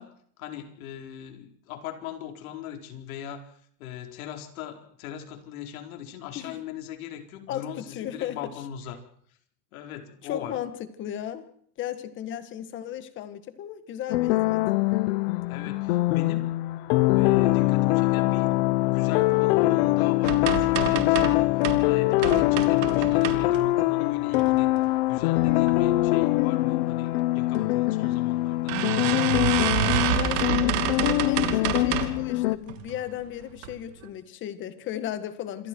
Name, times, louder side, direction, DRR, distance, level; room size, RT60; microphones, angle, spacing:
voice 1, 0.0-9.0 9.7-10.6 15.5-18.5 18.8-24.7 25.1-28.8, left 9 dB, 60° left, 4 dB, 4.4 m, -39 dB
voice 2, 7.5-8.4 10.2-10.7 11.0-11.4 11.8-14.6 30.1-35.7, left 11 dB, 25° left, 11 dB, 1.6 m, -35 dB
sound 1, 14.1-32.6, left 19 dB, 40° left, 0.8 m, -23 dB
sound 2, 20.2-21.8 22.2-23.8 24.3-24.9 25.3-25.8 26.0-26.1 26.4-26.5 27.5-27.7 28.0-28.1 28.7-32.2 32.7-33.1 33.6-33.7 34.0-34.1, right 11 dB, 50° right, 2.9 m, -28 dB
27.5 x 25.0 x 4.6 m, 0.63 s
supercardioid pair, 165°, 49 cm